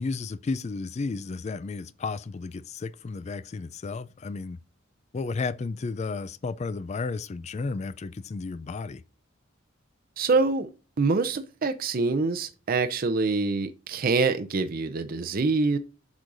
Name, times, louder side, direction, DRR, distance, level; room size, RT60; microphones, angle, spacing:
voice 1, 0.0-4.6 5.1-9.0, left 4 dB, 35° left, 0.3 m, -33 dB
voice 2, 10.2-10.7 11.0-15.8, right 3 dB, 45° right, 0.5 m, -25 dB
8.4 x 6.3 x 2.5 m
head